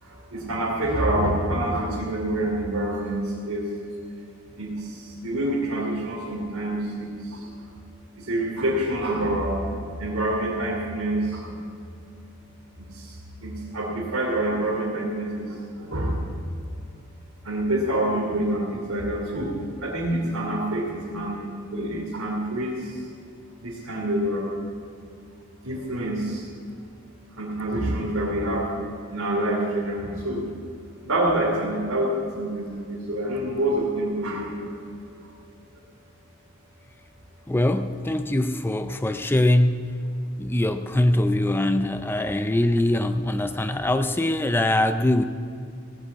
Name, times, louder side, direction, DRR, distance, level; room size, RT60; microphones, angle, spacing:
voice 1, 0.0-3.6 4.6-7.5 8.2-9.7 10.0-11.6 12.9-13.1 13.4-16.3 17.4-19.5 19.8-21.4 21.7-22.9 23.6-24.5 25.6-26.4 27.4-28.7 29.1-30.4 31.0-34.7, right 1 dB, 85° right, -6 dB, 2.9 m, -27 dB
voice 2, 37.5-40.0 40.4-45.2, left 1 dB, 10° left, 9 dB, 0.4 m, -22 dB
17.0 x 8.4 x 8.3 m, 2.5 s
head